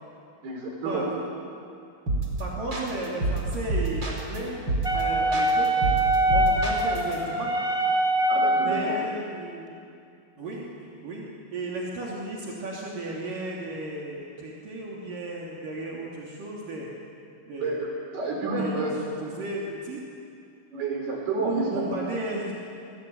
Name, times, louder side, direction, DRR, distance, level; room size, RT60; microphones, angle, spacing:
voice 1, 0.4-1.1 8.3-9.0 17.6-18.9 20.7-21.7, right 3 dB, 80° right, 0 dB, 7.6 m, -30 dB
sound 1, 2.1-2.4 2.7-4.4 4.7-5.0 5.3-7.2, right 2 dB, 30° right, 4.8 m, -27 dB
voice 2, 2.4-4.6 4.9-5.7 6.3-7.6 8.6-9.7 10.4-11.3 11.5-16.9 17.5-17.8 18.6-18.8 19.2-20.1 21.5-22.5, right 2 dB, 60° right, -4 dB, 4.6 m, -34 dB
Wind instrument woodwind instrument, 4.8-9.0, right 1 dB, ahead, 3.1 m, -24 dB
30.0 x 20.5 x 9.5 m, 2.5 s
omnidirectional pair, 4.5 m